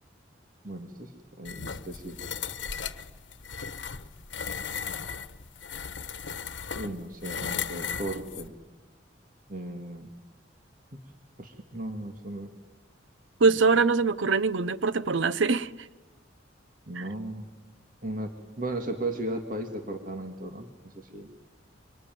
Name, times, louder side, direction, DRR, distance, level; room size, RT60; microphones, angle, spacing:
voice 1, 0.6-2.2 6.7-8.5 9.5-10.1 10.9-11.0 11.4-12.5 16.9-17.5 18.0-21.3, right 1 dB, 45° right, 2.0 m, -36 dB
sound 1, 1.4-8.5, left 6 dB, 75° left, 1.1 m, -36 dB
voice 2, 13.4-15.7 17.0-17.1, right 4 dB, 85° right, 0.8 m, -23 dB
25.5 x 25.0 x 9.3 m
head